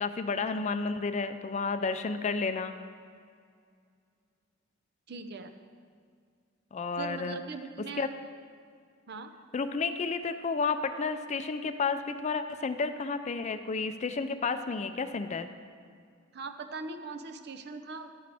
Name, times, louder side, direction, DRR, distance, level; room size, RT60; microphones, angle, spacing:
voice 1, 0.0-2.8 6.7-7.4 8.0-8.1 9.5-15.5, left 4 dB, 35° left, 10 dB, 0.4 m, -31 dB
voice 2, 5.1-5.5 7.0-8.1 9.1-9.3 16.3-18.1, right 4 dB, 55° right, 8 dB, 0.6 m, -40 dB
11.5 x 9.9 x 3.5 m, 2.2 s
head